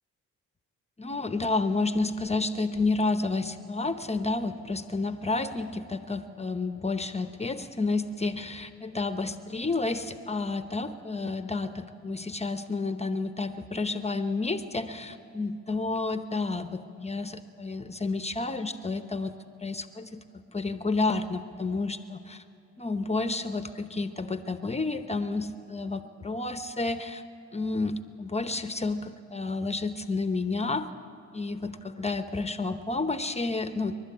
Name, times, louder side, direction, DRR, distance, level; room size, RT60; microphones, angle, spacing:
voice 1, 1.0-20.2 20.5-22.4 22.8-27.2 27.5-30.9 31.3-33.9, left 3 dB, 20° left, 9 dB, 0.9 m, -30 dB
27.0 x 12.5 x 8.6 m, 2.8 s
cardioid pair, 90°, 30 cm